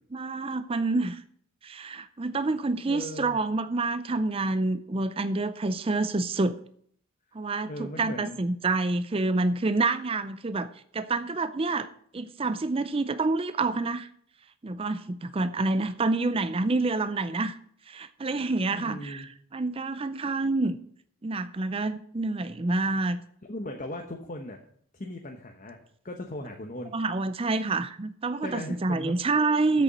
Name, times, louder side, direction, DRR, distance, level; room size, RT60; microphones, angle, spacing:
voice 1, 0.1-1.2 1.6-6.6 7.3-11.9 12.1-14.1 14.6-17.6 17.9-20.8 21.2-23.2 26.9-29.8, right 3 dB, 25° right, 12 dB, 0.4 m, -28 dB
voice 2, 2.8-3.4 7.7-8.4 18.7-19.3 23.5-24.6 24.9-27.0 28.4-29.2, left 1 dB, 35° left, 3 dB, 1.0 m, -38 dB
8.0 x 6.9 x 7.7 m, 0.62 s
head